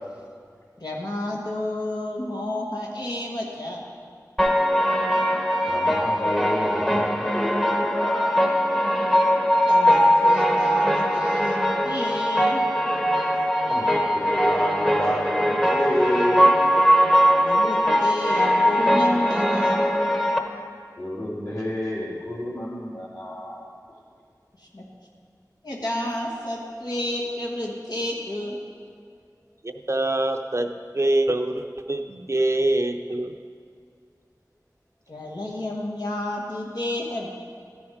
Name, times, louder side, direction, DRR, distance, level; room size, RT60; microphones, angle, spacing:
voice 1, 0.8-3.8 9.7-12.6 17.4-19.8 24.6-24.8 25.6-28.6 35.1-37.3, left 1 dB, 75° left, -3 dB, 1.3 m, -31 dB
sound 1, 4.4-20.4, equal, 5° left, 0.9 m, -21 dB
voice 2, 5.7-8.3 13.6-16.5 21.0-23.7, left 1 dB, 55° left, -5 dB, 2.9 m, -30 dB
voice 3, 29.6-33.3, right 1 dB, 45° right, 6 dB, 0.5 m, -24 dB
13.0 x 7.1 x 4.8 m, 2.2 s
wide cardioid pair, 45°, 7 cm